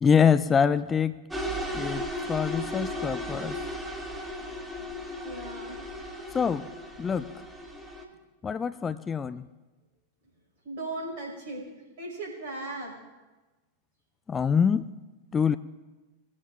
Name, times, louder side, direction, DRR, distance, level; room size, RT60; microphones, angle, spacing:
voice 1, 0.0-1.2 1.7-3.6 6.3-6.7 7.0-7.3 8.4-9.4 14.3-14.9 15.3-15.6, left 6 dB, 20° left, 14 dB, 0.4 m, -25 dB
sound 1, 1.3-8.0, equal, 5° right, 2.0 m, -35 dB
voice 2, 5.2-5.8 10.6-11.6 12.0-12.9, right 2 dB, 50° right, 0 dB, 5.4 m, -37 dB
19.5 x 15.5 x 2.6 m, 1.2 s
figure-of-eight pair, 90°, 0 cm